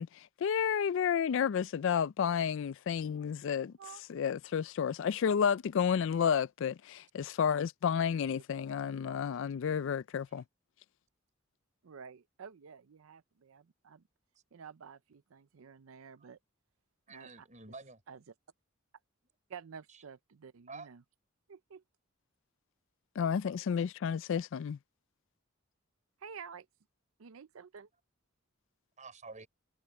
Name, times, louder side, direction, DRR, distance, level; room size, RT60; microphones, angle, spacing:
voice 1, 0.0-3.7 4.1-10.4 23.2-24.8, left 7 dB, 65° left, 0.4 m, -31 dB
voice 2, 11.8-14.0 14.5-16.4 17.1-17.5 18.1-18.2 19.5-21.0 21.5-21.8 26.2-26.7 27.2-27.9, right 6 dB, 90° right, 0.5 m, -50 dB
voice 3, 17.1-18.0 19.9-20.0 20.7-20.9 29.0-29.5, right 3 dB, 40° right, 6.1 m, -49 dB
head